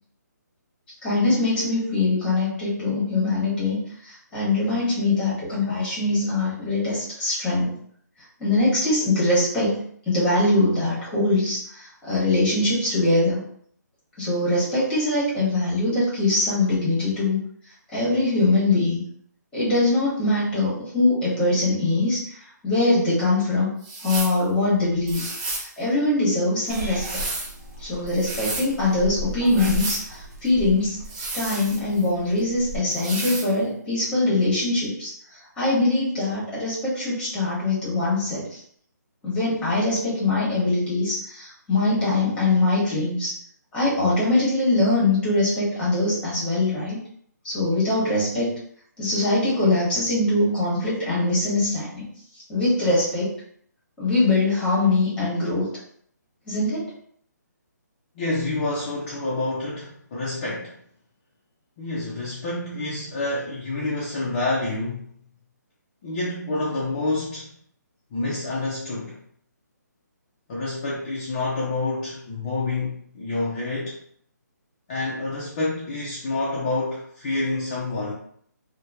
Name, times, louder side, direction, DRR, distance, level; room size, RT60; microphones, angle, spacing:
voice 1, 1.0-7.7 8.4-13.4 14.2-17.4 17.9-19.0 19.5-23.7 24.0-27.2 27.8-31.0 31.3-38.6 39.2-43.3 43.7-47.0 47.4-48.5 49.0-52.1 52.5-53.3 54.0-55.7 56.5-56.9, left 2 dB, 10° left, -8 dB, 1.1 m, -22 dB
sound 1, 23.8-24.4 25.1-25.7 26.7-27.5 28.1-28.7 29.5-30.1 31.0-32.1 32.9-33.5, right 2 dB, 20° right, 0.5 m, -32 dB
Purr / Meow, 26.7-32.8, equal, 55° right, 0.8 m, -37 dB
voice 2, 58.2-60.8 61.8-65.1 66.0-67.5 68.1-69.2 70.5-74.0 74.9-78.1, left 2 dB, 30° left, -6 dB, 0.5 m, -28 dB
2.9 x 2.1 x 2.3 m, 0.62 s
hypercardioid pair, 160°, 10 cm